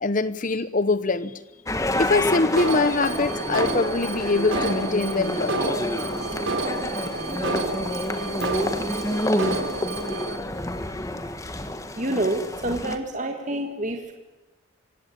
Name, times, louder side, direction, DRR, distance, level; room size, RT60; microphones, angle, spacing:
voice 1, 0.0-1.3 2.0-5.8, left 3 dB, 40° left, 15 dB, 0.9 m, -23 dB
sound 1, 1.7-13.0, left 1 dB, 15° left, 1.3 m, -29 dB
Alarm, 2.6-10.4, right 2 dB, 70° right, 3.4 m, -29 dB
voice 2, 12.0-14.1, right 1 dB, 35° right, 4 dB, 1.9 m, -27 dB
25.5 x 16.5 x 8.7 m, 1.1 s
head